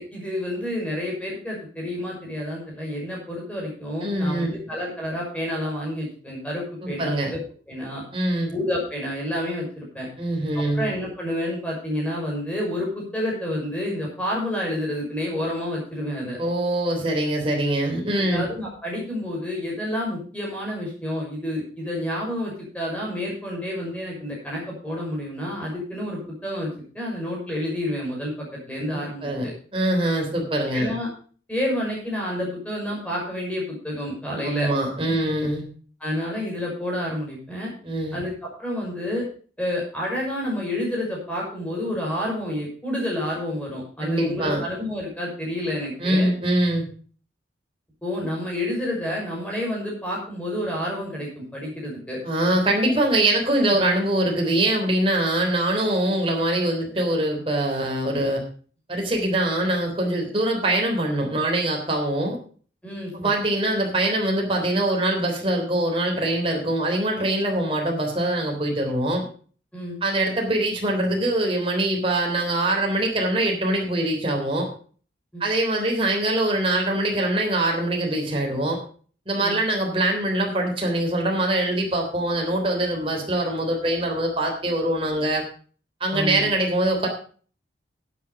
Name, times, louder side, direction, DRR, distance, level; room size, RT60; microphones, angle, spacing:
voice 1, 0.0-7.4 7.7-8.0 8.5-10.1 10.7-16.4 18.1-26.7 26.9-29.3 30.7-31.1 31.5-34.7 35.0-35.2 36.0-37.7 38.1-39.2 39.6-46.3 48.0-52.2 52.9-53.0 53.7-53.9 62.8-63.1 69.7-70.0 75.3-75.4 79.4-79.5 86.1-86.5, left 1 dB, 5° left, -3 dB, 5.9 m, -29 dB
voice 2, 4.0-4.6 6.8-7.3 8.1-8.5 10.2-10.9 16.4-18.4 28.9-30.9 34.4-35.6 37.8-38.2 44.0-44.6 46.0-46.8 52.2-58.4 58.9-62.4 63.1-69.2 70.0-74.7 75.4-78.8 79.3-85.4 86.0-87.1, right 1 dB, 30° right, 0 dB, 3.4 m, -23 dB
12.0 x 8.7 x 4.8 m, 0.41 s
head